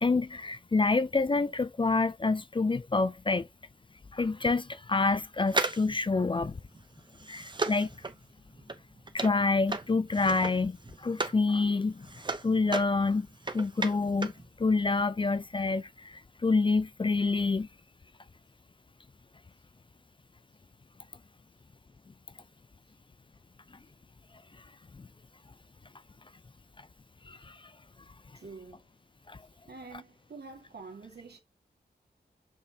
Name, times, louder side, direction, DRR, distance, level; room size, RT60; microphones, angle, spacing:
voice 1, 0.0-3.5 4.1-6.6 7.3-7.9 9.1-12.1 12.4-13.3 13.5-14.3 14.6-17.7 25.0-25.1 27.3-27.6 29.3-29.4, left 3 dB, 30° left, 0.4 m, -27 dB
sound 1, 5.5-11.4 11.8-14.5 14.7-14.8, right 3 dB, 25° right, 0.8 m, -35 dB
voice 2, 28.3-28.9 29.7-31.4, right 4 dB, 70° right, 2.1 m, -47 dB
6.7 x 5.5 x 2.8 m
wide cardioid pair, 115°, 18 cm